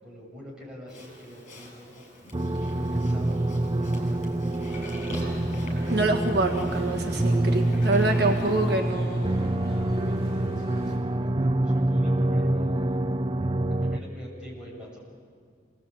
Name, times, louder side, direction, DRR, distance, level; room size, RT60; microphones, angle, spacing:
voice 1, 0.0-4.6 9.7-13.0 13.7-15.0, equal, 5° right, -5 dB, 7.6 m, -46 dB
Livestock farm animals working animals, 0.9-8.8, left 1 dB, 40° left, 7.4 m, -45 dB
sound 1, 2.3-14.0, right 1 dB, 25° right, 0.6 m, -26 dB
sound 2, 4.7-11.0, equal, 20° left, 6.4 m, -41 dB
voice 2, 5.9-9.4, right 2 dB, 60° right, 3 dB, 1.6 m, -26 dB
27.5 x 20.0 x 8.6 m, 2.1 s
head